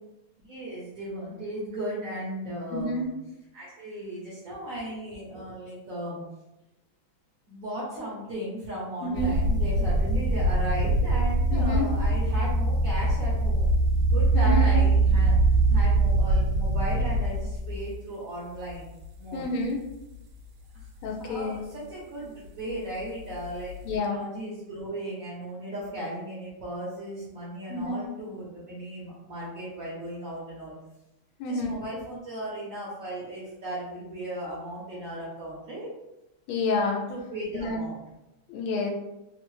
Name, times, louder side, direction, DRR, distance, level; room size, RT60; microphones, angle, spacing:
voice 1, 0.5-3.1 3.5-6.2 7.5-15.3 15.7-18.9 19.2-19.4 21.1-30.7 31.4-35.9 37.1-38.0, right 1 dB, 60° right, -7 dB, 0.9 m, -36 dB
voice 2, 2.7-3.1 9.0-9.4 11.5-11.9 14.3-14.7 19.3-19.8 21.0-21.6 23.8-24.2 27.7-28.1 31.4-31.8 36.5-37.0 37.5-37.8 38.5-38.9, left 2 dB, 85° left, 2 dB, 1.5 m, -29 dB
sound 1, 9.1-18.0 18.7-19.1 19.6-19.7 23.3-24.0, right 2 dB, 75° right, 1.4 m, -23 dB
3.5 x 2.0 x 3.0 m, 0.95 s
omnidirectional pair, 2.3 m